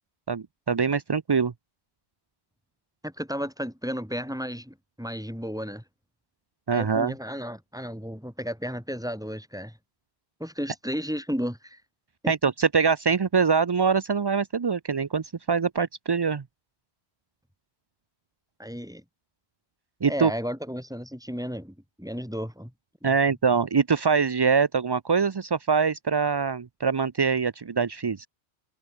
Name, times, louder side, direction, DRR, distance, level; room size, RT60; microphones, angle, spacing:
voice 1, 0.3-1.5 6.7-7.1 12.3-16.4 20.0-20.3 23.0-28.3, right 5 dB, 40° right, 0.4 m, -24 dB
voice 2, 3.0-5.8 6.7-9.8 10.4-11.8 12.2-12.3 18.6-19.0 20.0-22.7 23.0-23.1, equal, 5° right, 7.1 m, -33 dB
omnidirectional pair, 1.1 m